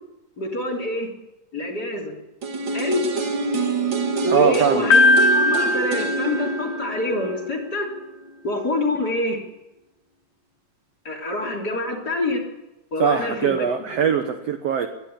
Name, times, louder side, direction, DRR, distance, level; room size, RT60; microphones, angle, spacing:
voice 1, 0.4-1.1 1.5-2.2 2.7-3.0 4.2-5.0 5.3-7.9 8.4-9.4 11.1-12.4 12.9-13.7, left 1 dB, 30° left, -1 dB, 3.6 m, -26 dB
sound 1, 2.4-8.3 8.6-8.7, right 3 dB, 40° right, 2.0 m, -27 dB
voice 2, 4.3-4.9 13.0-14.9, right 7 dB, 65° right, 7 dB, 1.7 m, -21 dB
Piano, 4.9-7.0, left 2 dB, 75° left, 3.2 m, -19 dB
21.5 x 13.0 x 9.9 m, 0.97 s
omnidirectional pair, 4.1 m